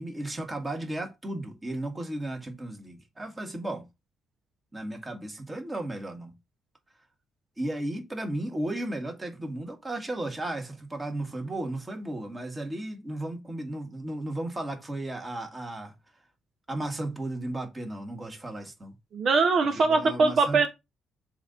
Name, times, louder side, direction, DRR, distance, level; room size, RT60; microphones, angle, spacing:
voice 1, 0.0-3.9 4.7-6.3 7.6-15.9 16.7-18.9 19.7-20.7, right 1 dB, 20° right, 1.9 m, -34 dB
voice 2, 19.1-20.7, right 4 dB, 60° right, 1.1 m, -22 dB
7.0 x 2.8 x 5.1 m
cardioid pair, 75°, 0 cm